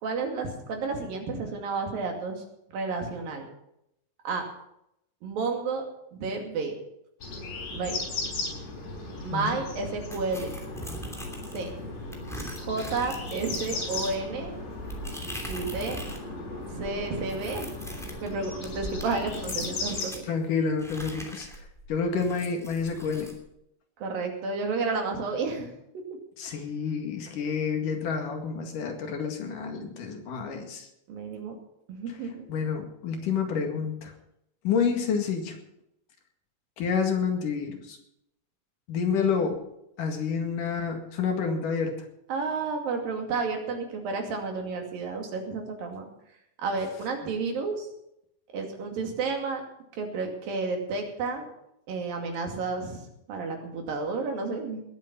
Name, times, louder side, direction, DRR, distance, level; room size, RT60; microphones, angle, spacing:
voice 1, 0.0-2.4 2.7-3.5 4.2-4.5 5.2-5.8 6.1-6.7 7.7-8.0 9.2-10.5 11.5-11.7 12.6-14.6 15.5-16.0 16.7-17.7 18.2-20.3 24.0-26.0 31.1-31.6 31.9-32.5 42.3-46.1 46.6-47.9 48.5-49.6 49.9-51.5 51.9-54.8, right 4 dB, 85° right, 3 dB, 4.3 m, -31 dB
sound 1, 7.2-20.1, left 3 dB, 85° left, 5.9 m, -37 dB
sound 2, 10.1-11.7 12.1-16.3 16.5-20.3 20.8-23.4, equal, ahead, 2.2 m, -41 dB
voice 2, 20.3-21.5 21.9-23.4 26.4-30.9 32.5-34.1 34.6-35.6 36.8-38.0 38.9-39.7 40.0-42.1, left 6 dB, 70° left, 3 dB, 3.6 m, -29 dB
20.0 x 8.5 x 5.7 m, 0.79 s
omnidirectional pair, 3.9 m